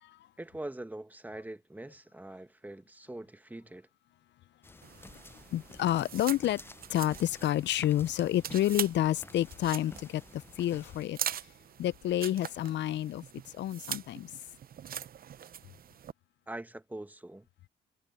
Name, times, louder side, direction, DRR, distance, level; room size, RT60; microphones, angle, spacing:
voice 1, 0.4-3.9 16.5-17.5, right 1 dB, 10° right, 1.2 m, -43 dB
sound 1, 4.6-11.1, left 2 dB, 10° left, 0.6 m, -52 dB
sound 2, 4.8-16.1, right 9 dB, 50° right, 0.6 m, -42 dB
voice 2, 5.5-6.6 6.9-11.2 11.8-13.2 13.5-14.3, left 13 dB, 65° left, 0.5 m, -29 dB
sound 3, 6.3-12.3, left 14 dB, 90° left, 6.0 m, -65 dB
cardioid pair, 90°, 20 cm